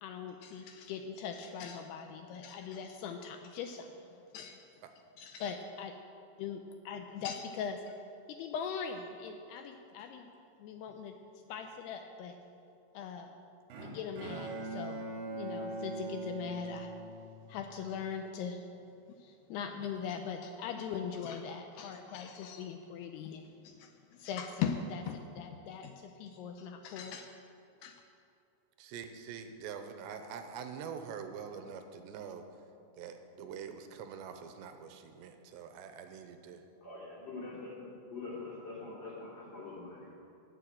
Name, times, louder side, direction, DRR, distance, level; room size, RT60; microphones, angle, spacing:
voice 1, 0.0-4.6 5.2-6.0 6.4-8.0 8.3-10.3 10.6-11.2 11.5-12.4 12.9-13.3 13.8-16.9 17.5-18.6 19.1-27.3 27.8-28.0, left 7 dB, 80° left, 5 dB, 2.5 m, -40 dB
Bowed string instrument, 13.7-17.9, right 2 dB, 70° right, 3.8 m, -41 dB
voice 2, 28.8-32.4 33.0-36.6, right 7 dB, 85° right, 7 dB, 3.0 m, -45 dB
voice 3, 36.8-40.1, left 3 dB, 25° left, -7 dB, 3.7 m, -44 dB
18.5 x 6.9 x 7.6 m, 2.6 s
omnidirectional pair, 5.0 m